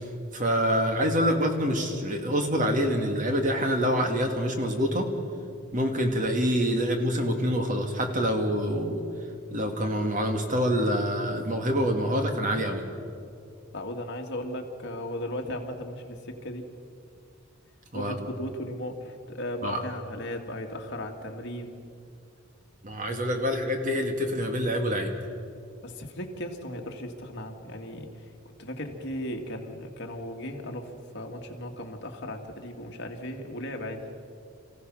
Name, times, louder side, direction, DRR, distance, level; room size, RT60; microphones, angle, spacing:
voice 1, 0.3-5.1 5.7-9.0 9.5-12.8 17.9-18.1 19.6-19.8 22.8-25.1, equal, 40° right, 4 dB, 2.1 m, -26 dB
voice 2, 13.7-16.7 17.9-21.8 23.4-23.5 25.8-28.1 28.6-34.1, left 1 dB, 55° left, 2 dB, 2.1 m, -36 dB
27.0 x 16.0 x 6.2 m, 2.4 s
head